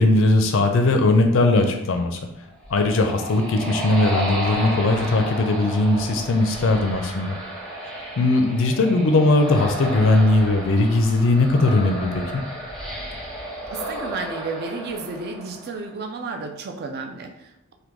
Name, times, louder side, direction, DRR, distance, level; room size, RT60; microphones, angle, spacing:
voice 1, 0.0-2.2 2.7-7.4 8.2-12.4, left 2 dB, 60° left, 5 dB, 0.4 m, -19 dB
sound 1, 2.4-16.0, right 1 dB, 5° left, 0.7 m, -33 dB
voice 2, 13.7-17.7, right 3 dB, 45° right, 4 dB, 0.4 m, -32 dB
3.5 x 2.2 x 3.0 m, 0.82 s
head